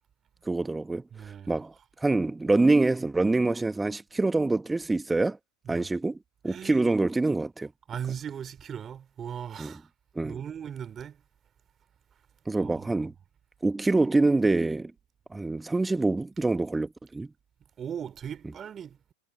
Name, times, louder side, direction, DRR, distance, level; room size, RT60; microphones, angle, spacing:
voice 1, 0.4-1.0 1.5-1.7 2.0-5.4 5.7-6.2 6.4-7.7 9.6-9.7 10.1-10.4 12.5-13.1 13.6-14.9 15.3-17.3, right 2 dB, 10° right, 1.7 m, -25 dB
voice 2, 1.1-1.6 5.6-5.9 6.5-6.9 7.9-9.9 10.2-11.2 12.6-12.9 17.8-19.1, right 8 dB, 30° right, 3.4 m, -38 dB
figure-of-eight pair, 85°, 0 cm